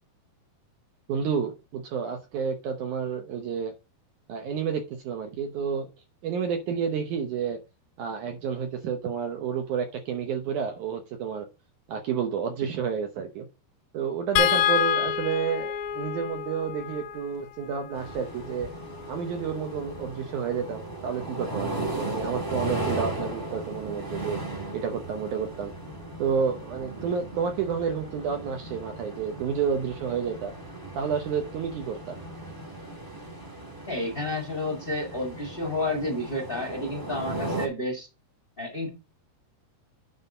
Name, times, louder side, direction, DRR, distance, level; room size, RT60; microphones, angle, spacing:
voice 1, 1.1-3.7 4.3-5.9 6.2-7.6 8.0-11.5 11.9-13.5 13.9-18.7 19.1-24.4 24.7-25.7 26.2-30.5 30.9-32.2, right 6 dB, 75° right, 1.8 m, -30 dB
sound 1, 14.4-20.7 22.2-22.4 22.7-22.9, left 10 dB, 80° left, 2.3 m, -30 dB
sound 2, 17.9-37.7, right 2 dB, 15° right, 0.6 m, -37 dB
voice 2, 33.9-38.1 38.6-38.9, left 1 dB, 40° left, 0.7 m, -30 dB
9.2 x 4.1 x 5.3 m
omnidirectional pair, 4.7 m